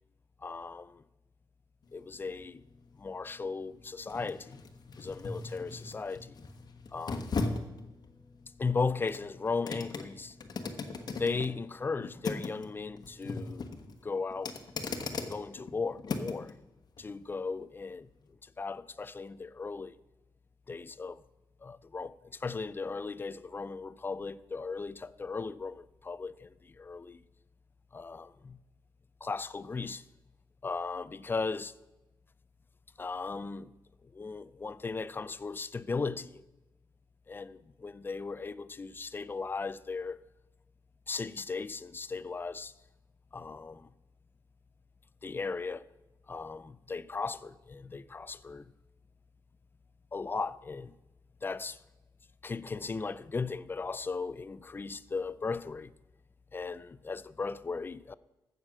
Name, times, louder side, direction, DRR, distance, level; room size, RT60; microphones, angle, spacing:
voice 1, 0.4-1.0 1.9-2.6 3.0-4.6 5.0-6.4 6.9-7.4 8.6-10.4 11.2-13.7 14.0-14.6 15.1-16.5 17.0-19.9 20.7-21.2 21.6-27.2 27.9-28.6 29.2-30.0 30.6-31.7 33.0-33.7 34.0-36.4 37.3-40.2 41.1-42.7 43.3-43.9 45.2-45.9 46.3-48.7 50.1-50.9 51.4-51.8 52.4-55.9 56.5-58.2, left 4 dB, 25° left, 0.4 m, -37 dB
sound 1, 1.8-16.5 17.0-17.1, left 3 dB, 55° left, 1.2 m, -39 dB
15.0 x 6.7 x 6.1 m
cardioid pair, 100°, 8 cm